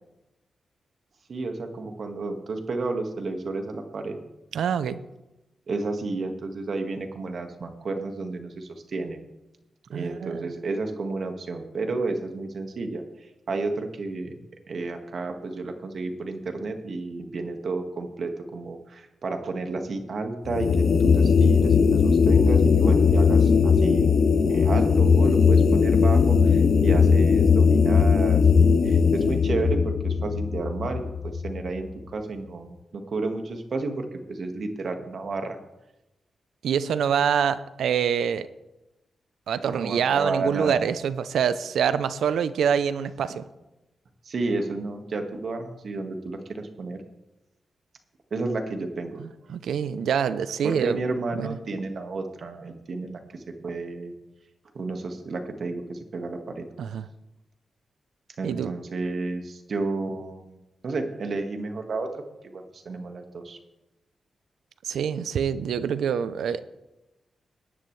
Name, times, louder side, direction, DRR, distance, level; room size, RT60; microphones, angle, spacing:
voice 1, 1.3-4.2 5.7-9.2 9.9-14.4 14.7-24.2 24.5-35.6 39.6-40.9 43.3-43.4 44.2-47.0 48.3-49.2 50.6-54.1 54.7-56.6 58.4-63.6, right 3 dB, 65° right, 5 dB, 1.7 m, -32 dB
voice 2, 4.5-5.0 9.9-10.5 36.6-38.5 39.5-43.4 49.2-51.0 51.3-51.6 56.8-57.1 58.4-58.7 64.8-66.6, right 7 dB, 85° right, 14 dB, 0.6 m, -25 dB
sound 1, 20.5-31.8, left 5 dB, 65° left, 0.6 m, -19 dB
18.5 x 10.5 x 3.3 m, 0.97 s
cardioid pair, 65°, 0 cm